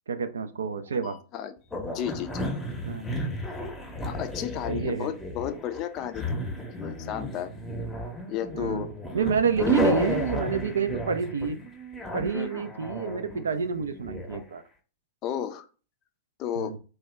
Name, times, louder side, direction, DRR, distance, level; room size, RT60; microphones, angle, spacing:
voice 1, 0.1-1.2 2.8-3.1 4.7-5.1 8.5-8.9 9.1-11.6 12.1-14.6 16.6-16.8, right 6 dB, 75° right, 10 dB, 0.3 m, -28 dB
voice 2, 0.7-1.5 1.9-2.5 4.0-7.5 8.3-8.9 12.3-12.6 15.2-15.7 16.4-16.8, left 10 dB, 40° left, 10 dB, 0.3 m, -34 dB
sound 1, 1.7-14.4, equal, 10° left, 0.7 m, -32 dB
2.7 x 2.2 x 3.2 m, 0.37 s
figure-of-eight pair, 95°, 0 cm